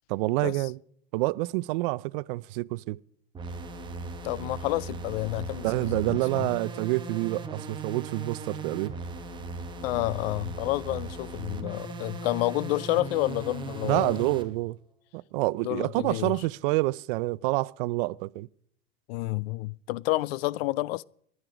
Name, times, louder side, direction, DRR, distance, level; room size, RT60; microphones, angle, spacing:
voice 1, 0.1-0.8 1.1-3.0 5.6-8.9 13.8-14.8 15.1-18.5, right 21 dB, 55° right, 0.4 m, -28 dB
sound 1, 3.3-14.5, right 3 dB, 15° right, 1.1 m, -38 dB
voice 2, 4.2-6.5 7.6-7.7 9.8-14.2 15.6-16.4 19.1-21.0, left 18 dB, 70° left, 0.5 m, -30 dB
15.0 x 11.0 x 5.0 m
supercardioid pair, 155°, 32 cm